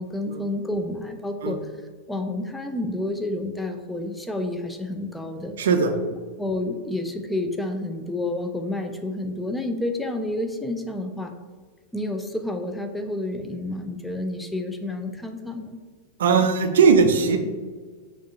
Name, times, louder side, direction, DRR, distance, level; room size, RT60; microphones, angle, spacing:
voice 1, 0.0-1.6 2.1-5.6 6.4-11.3 11.9-15.8, left 1 dB, 5° left, 5 dB, 0.4 m, -29 dB
voice 2, 5.6-5.9 16.2-17.4, right 5 dB, 60° right, 6 dB, 0.4 m, -18 dB
6.0 x 2.4 x 2.7 m, 1.5 s
figure-of-eight pair, 90°, 0 cm